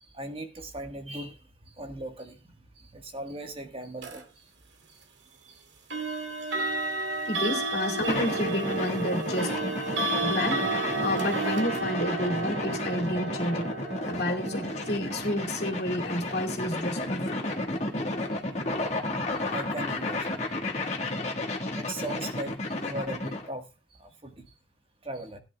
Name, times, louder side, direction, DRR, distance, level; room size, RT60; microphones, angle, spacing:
voice 1, 0.0-1.4 1.6-2.4 2.8-4.4 5.4-5.6 6.1-6.2 6.6-6.7 19.5-20.4 21.8-23.7 24.0-24.5 25.0-25.4, right 1 dB, 30° right, 1.5 m, -38 dB
sound 1, 4.0-4.2 5.9-18.7, right 3 dB, 80° right, 2.0 m, -33 dB
voice 2, 7.3-9.8 10.2-13.7 14.1-17.4, left 1 dB, 60° left, 2.6 m, -30 dB
sound 2, 8.1-23.5, left 2 dB, 40° left, 1.8 m, -32 dB
17.0 x 10.0 x 2.3 m
head